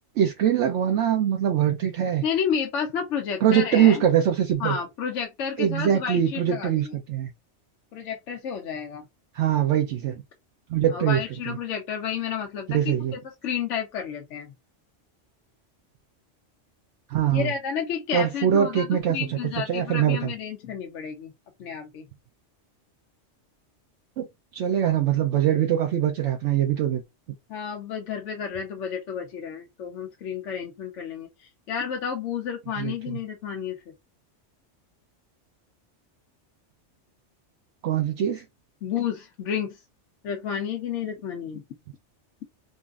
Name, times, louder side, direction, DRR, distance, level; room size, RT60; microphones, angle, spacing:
voice 1, 0.2-2.2 3.4-4.8 5.6-7.3 9.3-10.2 10.7-11.6 12.7-13.1 17.1-17.5 18.1-20.3 24.2-24.3 24.5-27.0 32.8-33.2 37.8-38.4, right 10 dB, 75° right, 0.9 m, -23 dB
voice 2, 2.2-4.0 4.6-7.0 7.9-9.0 10.9-12.9 13.4-14.5 17.3-21.3 21.6-22.0 27.5-33.8 38.8-39.8 40.2-41.6, left 7 dB, 80° left, 1.0 m, -31 dB
3.8 x 2.4 x 2.4 m
omnidirectional pair, 1.2 m